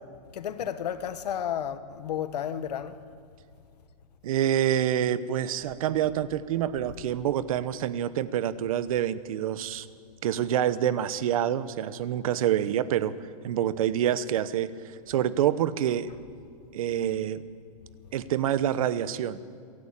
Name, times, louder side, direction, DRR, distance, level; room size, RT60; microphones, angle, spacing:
voice 1, 0.3-3.0, left 9 dB, 85° left, 1.4 m, -32 dB
voice 2, 4.2-9.9 10.2-13.1 13.4-14.7 15.1-16.1 16.7-17.4 18.1-19.4, right 10 dB, 60° right, 1.0 m, -27 dB
27.5 x 11.5 x 8.8 m
supercardioid pair, 165°, 20 cm